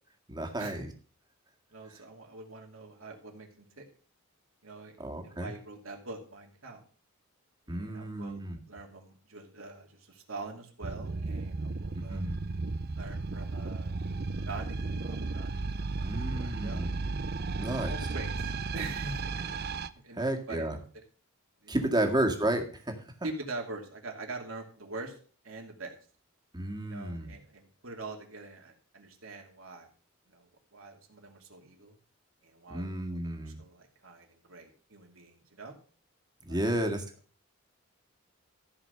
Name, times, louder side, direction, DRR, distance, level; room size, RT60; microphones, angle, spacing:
voice 1, 0.3-0.9 5.0-5.5 7.7-8.6 11.9-12.4 16.0-16.9 17.6-17.9 20.1-20.8 21.7-22.9 26.5-27.3 32.7-33.6 36.5-37.0, right 1 dB, 20° right, 4 dB, 1.9 m, -32 dB
voice 2, 1.7-3.9 4.6-6.8 7.7-8.4 8.7-12.2 13.0-14.0 14.4-16.9 17.7-19.4 19.9-21.0 21.6-22.1 23.2-25.2 25.4-26.0 26.8-29.9 30.3-32.0 32.4-35.8 36.5-36.9, right 3 dB, 75° right, 1 dB, 2.6 m, -44 dB
sound 1, 10.8-19.9, right 3 dB, 50° right, 0.6 m, -34 dB
14.5 x 5.0 x 6.7 m, 0.42 s
head